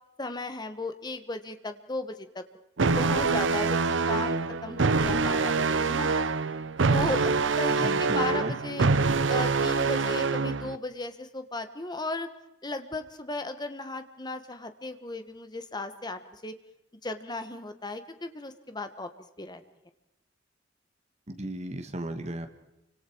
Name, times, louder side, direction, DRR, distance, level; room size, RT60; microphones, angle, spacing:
voice 1, 0.2-2.4 3.0-6.1 6.9-12.3 12.6-16.5 17.0-19.1 19.4-19.6, left 2 dB, 25° left, 9 dB, 1.5 m, -36 dB
sound 1, 2.8-10.8, right 4 dB, 85° right, 0.8 m, -25 dB
voice 2, 7.8-8.6 21.3-22.5, right 1 dB, 35° right, 7 dB, 1.7 m, -35 dB
29.0 x 25.5 x 4.7 m, 0.92 s
head